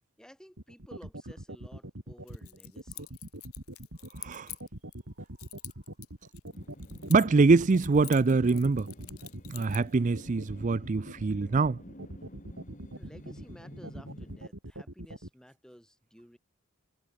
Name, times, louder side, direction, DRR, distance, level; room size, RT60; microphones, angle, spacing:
voice 1, 0.2-3.2 12.9-16.4, equal, 5° left, 7.5 m, -54 dB
sound 1, 0.6-15.3, right 1 dB, 60° right, 3.5 m, -43 dB
Keys jangling, 2.3-5.0 5.4-7.5 7.7-10.0, left 17 dB, 90° left, 2.9 m, -46 dB
sound 2, 6.5-14.5, equal, 35° left, 4.7 m, -50 dB
voice 2, 7.1-8.9 9.5-11.8, right 3 dB, 35° right, 0.4 m, -24 dB
head